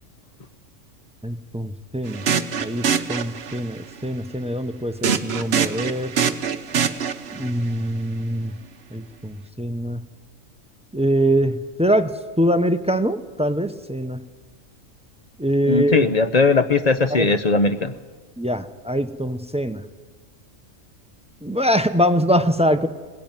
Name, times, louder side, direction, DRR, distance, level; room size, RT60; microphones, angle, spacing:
voice 1, 1.2-2.2 2.6-6.1 7.3-8.5 8.9-10.0 10.9-12.1 12.4-14.2 15.4-16.1 17.1-17.3 18.4-19.8 21.4-22.9, equal, 5° right, 10 dB, 0.6 m, -23 dB
sound 1, 2.1-3.8 5.0-7.5, right 7 dB, 55° right, 1.1 m, -24 dB
voice 2, 15.7-17.9, left 4 dB, 35° left, 10 dB, 0.7 m, -19 dB
20.0 x 16.5 x 9.0 m, 1.4 s
omnidirectional pair, 1.4 m